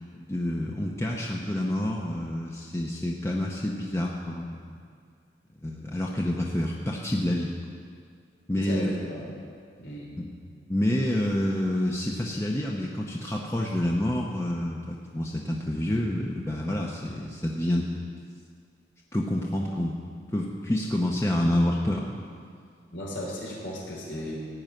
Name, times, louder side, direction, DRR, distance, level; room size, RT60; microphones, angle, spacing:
voice 1, 0.2-4.6 5.6-7.5 8.5-8.9 10.2-10.3 10.7-17.9 19.1-20.0 20.3-22.1, left 1 dB, 15° left, -1 dB, 0.7 m, -28 dB
voice 2, 8.6-9.2 9.8-10.1 22.9-24.4, equal, 85° left, -4 dB, 3.8 m, -35 dB
16.0 x 5.5 x 9.1 m, 2.2 s
head